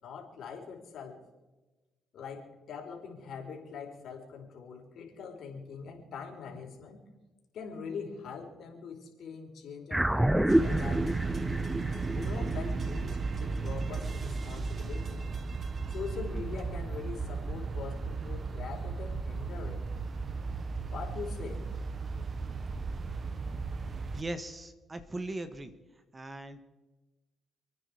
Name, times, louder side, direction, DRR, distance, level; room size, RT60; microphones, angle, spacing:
voice 1, 0.0-1.2 2.1-7.0 7.5-11.1 12.1-15.3 15.9-19.8 20.9-21.6, left 6 dB, 70° left, 1 dB, 4.1 m, -42 dB
sound 1, 9.9-14.5, right 1 dB, 5° right, 0.4 m, -29 dB
sound 2, 10.5-24.2, right 4 dB, 40° right, 1.3 m, -35 dB
voice 2, 24.1-25.7 26.1-26.6, right 2 dB, 25° right, 10 dB, 1.5 m, -39 dB
28.5 x 9.6 x 5.0 m, 1.1 s
cardioid pair, 90°, 0 cm